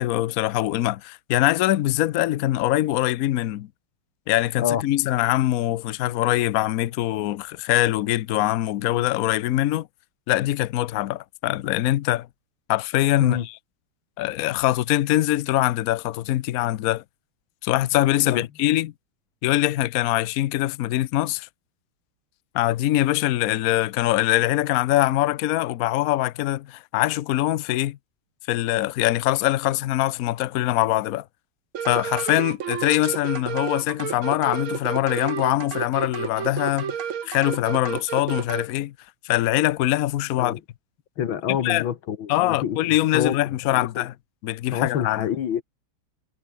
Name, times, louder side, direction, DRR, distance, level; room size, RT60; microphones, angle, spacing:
voice 1, 0.0-3.7 4.3-9.9 10.3-12.3 12.7-13.5 14.2-17.0 17.6-18.9 19.4-21.5 22.5-28.0 28.5-31.2 31.8-36.9 37.2-38.9 39.2-40.6 41.5-41.9 42.3-44.1 44.4-45.3, left 15 dB, 90° left, 0.7 m, -23 dB
sound 1, 31.7-38.7, right 8 dB, 75° right, 2.5 m, -31 dB
voice 2, 41.2-43.4 43.7-44.1 44.7-45.6, left 9 dB, 70° left, 2.2 m, -27 dB
omnidirectional pair, 2.3 m